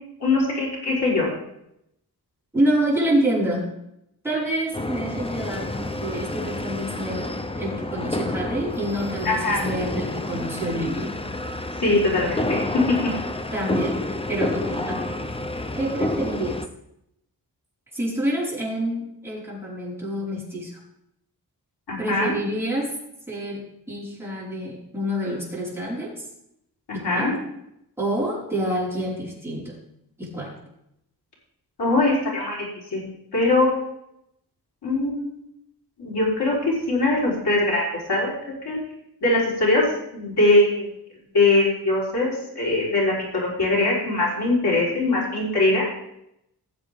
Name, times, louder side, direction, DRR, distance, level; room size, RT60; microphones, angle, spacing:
voice 1, 0.2-1.3 9.2-9.6 11.8-12.8 21.9-22.3 27.0-27.3 31.8-32.6 32.9-33.1 33.3-33.7 34.8-35.4 36.0-38.3 38.7-38.8 39.2-39.8 40.1-40.9 41.3-45.9, left 2 dB, 80° left, -4 dB, 4.1 m, -21 dB
voice 2, 2.5-3.7 4.2-11.2 13.5-15.1 15.7-16.6 17.9-20.8 22.0-22.9 23.3-26.3 26.9-27.4 28.0-29.8 30.2-30.6, right 1 dB, 5° right, -7 dB, 4.9 m, -27 dB
sound 1, 4.7-16.7, left 2 dB, 15° left, 0.7 m, -29 dB
18.0 x 7.6 x 3.6 m, 0.80 s
wide cardioid pair, 115°, 39 cm